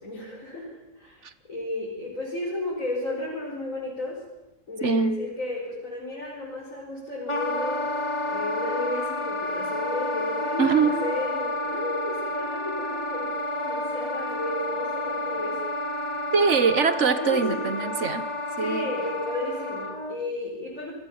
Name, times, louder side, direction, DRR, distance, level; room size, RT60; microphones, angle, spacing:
voice 1, 0.0-1.2 1.5-4.2 4.7-8.0 8.3-13.3 13.6-15.6 17.0-17.7 18.6-20.9, left 2 dB, 75° left, -5 dB, 5.9 m, -33 dB
voice 2, 4.8-5.2 10.6-11.0 16.3-18.3 18.6-18.9, right 5 dB, 60° right, 13 dB, 1.6 m, -23 dB
Wind instrument woodwind instrument, 7.3-20.2, left 2 dB, 20° left, 2.7 m, -30 dB
27.5 x 21.5 x 7.2 m, 0.95 s
omnidirectional pair, 1.4 m